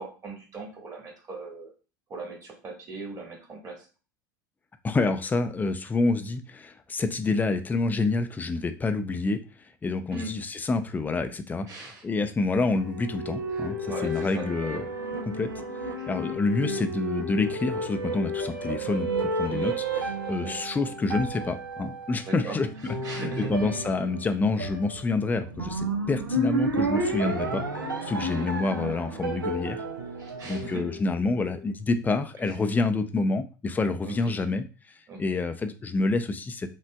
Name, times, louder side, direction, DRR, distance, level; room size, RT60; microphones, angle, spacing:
voice 1, 0.0-1.7 2.1-3.8 10.1-10.3 11.7-12.0 13.5-14.4 16.0-16.1 19.5-19.7 20.4-20.5 22.2-22.6 23.0-23.7 28.2-28.6 30.2-30.9 32.4-32.5 34.0-34.3 35.1-35.4, right 3 dB, 30° right, 0 dB, 1.6 m, -39 dB
voice 2, 4.8-9.4 9.8-14.9 15.2-15.5 16.1-22.7 23.1-27.6 28.0-29.8 30.4-34.6 35.2-36.7, left 3 dB, 15° left, 8 dB, 0.5 m, -28 dB
sound 1, 12.7-31.2, right 1 dB, 85° right, 0.6 m, -32 dB
5.8 x 2.4 x 2.3 m, 0.34 s
figure-of-eight pair, 75°, 11 cm